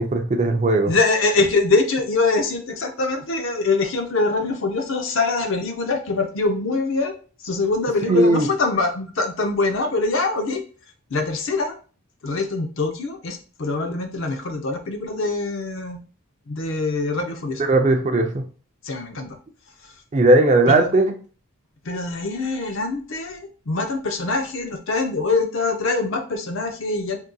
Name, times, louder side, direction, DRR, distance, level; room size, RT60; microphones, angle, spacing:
voice 1, 0.0-0.9 8.1-8.5 17.6-18.4 20.1-21.1, right 2 dB, 30° right, 5 dB, 0.4 m, -17 dB
voice 2, 0.9-7.1 7.4-10.6 11.1-11.8 12.2-16.0 16.5-17.6 18.8-19.4 20.7-20.9 21.8-27.2, left 3 dB, 60° left, 5 dB, 0.5 m, -23 dB
3.7 x 2.7 x 2.2 m, 0.38 s
head